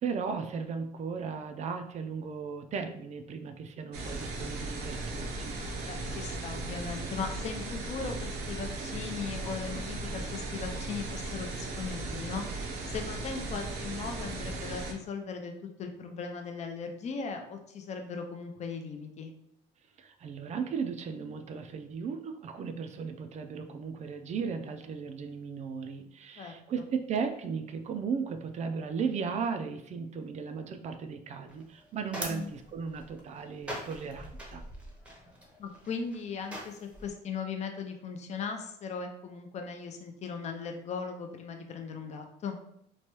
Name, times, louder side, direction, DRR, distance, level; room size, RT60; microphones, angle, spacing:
voice 1, 0.0-5.6 20.0-34.6, right 5 dB, 45° right, 7 dB, 0.4 m, -36 dB
sound 1, 3.9-14.9, right 2 dB, 80° right, 0.6 m, -37 dB
voice 2, 5.8-15.5 15.8-19.3 26.4-26.5 32.3-32.5 35.6-42.6, left 5 dB, 40° left, 5 dB, 0.5 m, -38 dB
sound 2, 31.5-37.1, equal, 5° right, 0.7 m, -43 dB
3.0 x 2.2 x 2.9 m, 0.73 s
cardioid pair, 110°, 17 cm